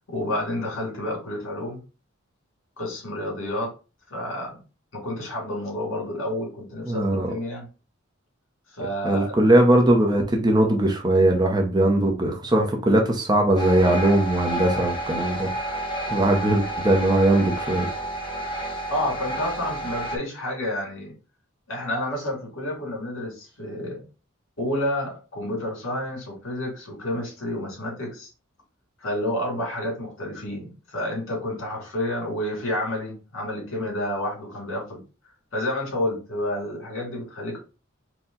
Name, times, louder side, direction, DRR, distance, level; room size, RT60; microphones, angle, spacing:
voice 1, 0.1-1.8 2.8-3.7 4.1-4.6 4.9-7.7 8.7-9.5 18.9-21.1 21.7-24.0 24.6-28.3 29.0-35.0 35.5-37.6, left 1 dB, 70° left, 2.3 m, -30 dB
voice 2, 6.9-7.3 9.0-15.8 16.1-17.9, right 1 dB, 20° right, 0.7 m, -20 dB
sound 1, 13.6-20.2, right 1 dB, 25° left, 0.9 m, -30 dB
4.4 x 2.3 x 3.8 m
head